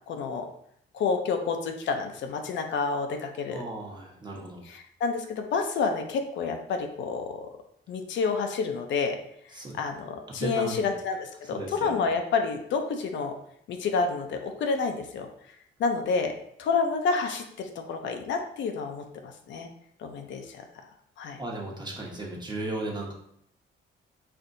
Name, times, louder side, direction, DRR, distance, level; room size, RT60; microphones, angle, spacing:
voice 1, 0.1-0.5 0.9-3.6 4.7-7.4 7.9-9.2 9.5-13.3 13.7-15.3 15.8-16.3 16.6-19.7 20.0-20.6 21.2-21.4, left 4 dB, 70° left, 4 dB, 0.5 m, -29 dB
voice 2, 3.5-4.7 9.5-9.8 10.4-10.9 11.5-12.1 21.4-23.1, right 2 dB, 20° right, -2 dB, 1.0 m, -35 dB
4.3 x 2.5 x 2.6 m, 0.71 s
cardioid pair, 90°, 20 cm